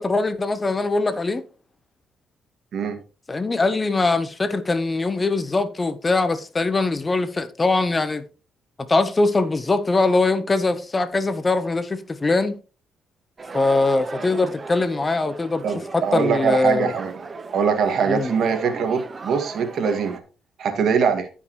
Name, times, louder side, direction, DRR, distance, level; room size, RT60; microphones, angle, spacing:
voice 1, 0.0-1.4 3.3-8.2 8.9-12.6 13.5-15.6 15.9-16.9 18.1-18.3, left 3 dB, 25° left, 1.0 m, -22 dB
sound 1, 13.4-20.2, right 4 dB, 35° right, 1.0 m, -37 dB
voice 2, 15.6-17.1 17.5-20.2 20.6-21.3, right 6 dB, 65° right, 2.0 m, -22 dB
15.0 x 5.6 x 3.1 m
cardioid pair, 90°, 0 cm